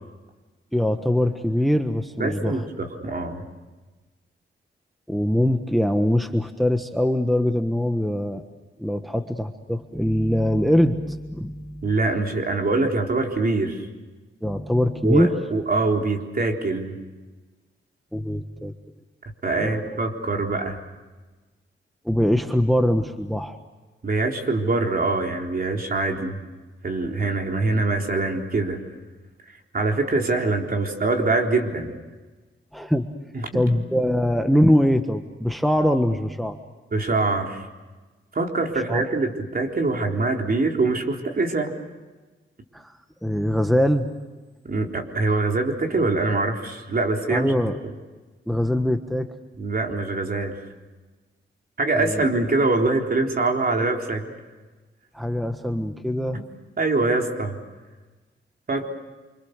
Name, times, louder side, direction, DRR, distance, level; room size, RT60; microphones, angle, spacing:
voice 1, 0.7-2.6 5.1-8.4 8.8-11.9 14.4-15.3 18.1-18.7 19.5-20.0 22.0-23.6 32.7-33.1 33.5-36.6 38.9-39.0 42.7-43.0 43.2-44.1 47.3-47.8 48.5-49.3 51.9-52.2 55.1-56.4, equal, ahead, 7 dB, 1.4 m, -22 dB
voice 2, 2.2-3.4 11.8-13.9 15.0-17.0 19.4-20.8 24.0-26.4 26.8-28.8 29.7-31.9 33.3-34.0 36.9-37.6 38.3-41.8 44.6-47.5 49.6-50.5 51.8-54.2 56.3-56.4 56.8-57.6 58.7-58.9, right 3 dB, 45° right, 2 dB, 3.9 m, -24 dB
27.5 x 25.5 x 6.7 m, 1.2 s
cardioid pair, 85°, 21 cm